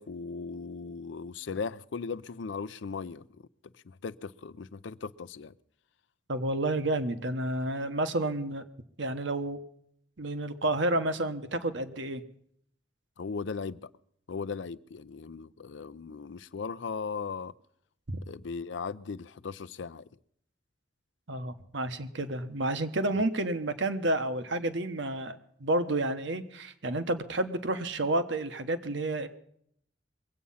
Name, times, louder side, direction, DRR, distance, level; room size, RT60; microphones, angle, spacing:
voice 1, 0.0-3.2 3.8-5.5 13.2-13.9 14.3-17.5 18.3-20.1, left 5 dB, 75° left, 0.5 m, -37 dB
voice 2, 6.3-8.6 9.0-9.6 10.2-12.2 18.1-18.2 21.3-29.3, right 1 dB, 70° right, 1.1 m, -30 dB
22.5 x 8.6 x 5.6 m
head